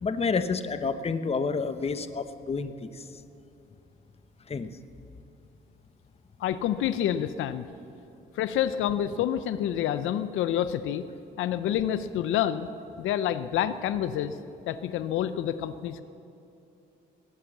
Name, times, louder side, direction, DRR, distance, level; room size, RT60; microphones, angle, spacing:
voice 1, 0.0-3.1 4.5-4.7, left 4 dB, 30° left, 10 dB, 0.9 m, -29 dB
voice 2, 6.4-7.7 8.3-11.1 11.4-12.7 13.0-14.4 14.7-16.0, left 10 dB, 85° left, 12 dB, 0.6 m, -28 dB
18.5 x 10.0 x 7.2 m, 2.8 s
cardioid pair, 90°, 20 cm